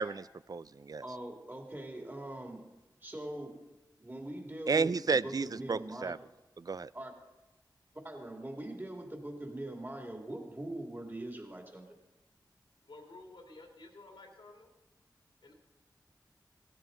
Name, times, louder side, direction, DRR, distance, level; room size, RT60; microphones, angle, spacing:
voice 1, 0.0-1.0 4.7-6.2 6.6-6.9, right 4 dB, 50° right, 18 dB, 0.3 m, -32 dB
voice 2, 1.0-2.6 3.0-3.7 4.0-6.1 6.9-7.1 8.0-11.9, right 1 dB, 25° right, 2 dB, 2.4 m, -42 dB
voice 3, 12.8-14.7 15.4-15.5, left 2 dB, 85° left, 1 dB, 2.4 m, -52 dB
17.0 x 13.5 x 3.8 m, 1.0 s
cardioid pair, 45°, 8 cm